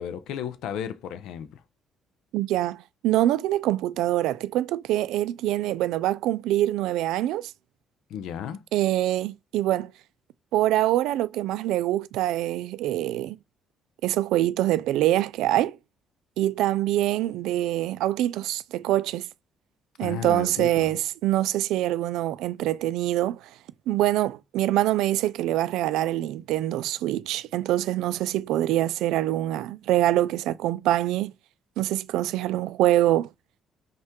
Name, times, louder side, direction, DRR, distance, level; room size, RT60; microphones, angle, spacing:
voice 1, 0.0-1.6 8.1-8.6 20.0-20.9, left 9 dB, 75° left, 0.4 m, -34 dB
voice 2, 2.3-7.5 8.7-9.9 10.5-13.4 14.0-15.8 16.4-19.3 20.0-23.4 23.9-31.3 31.8-33.3, right 14 dB, 90° right, 0.3 m, -24 dB
5.3 x 2.3 x 3.6 m
cardioid pair, 160°, 0 cm